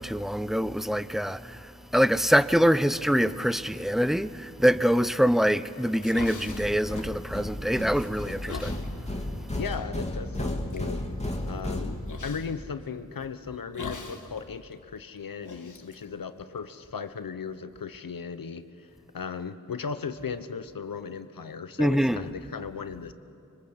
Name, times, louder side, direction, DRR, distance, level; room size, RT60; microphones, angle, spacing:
voice 1, 0.0-1.6 1.9-8.8 21.8-22.3, equal, ahead, 0.7 m, -24 dB
sound 1, 5.8-7.6 7.9-8.8 9.7-9.9 10.4-10.8 12.1-12.5 13.7-14.4 14.6-14.7 15.4-16.9, left 4 dB, 65° left, 1.8 m, -41 dB
sound 2, 6.5-12.5, left 1 dB, 20° left, 2.7 m, -34 dB
voice 2, 9.5-11.0 11.4-23.1, left 6 dB, 85° left, 1.0 m, -37 dB
25.5 x 24.0 x 8.1 m
wide cardioid pair, 65°, 33 cm